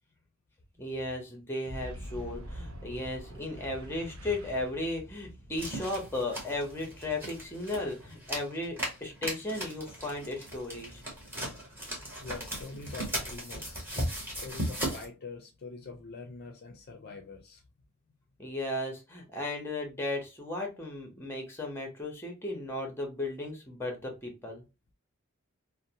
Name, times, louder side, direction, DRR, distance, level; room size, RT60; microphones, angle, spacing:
voice 1, 0.8-11.0 18.4-24.6, left 2 dB, 10° left, 0.7 m, -35 dB
Boom, 1.6-8.2, equal, 80° right, 0.5 m, -46 dB
sound 1, 5.6-15.1, equal, 10° right, 1.0 m, -37 dB
voice 2, 12.2-13.9 14.4-17.6, left 4 dB, 50° left, 0.4 m, -44 dB
2.6 x 2.0 x 2.7 m
head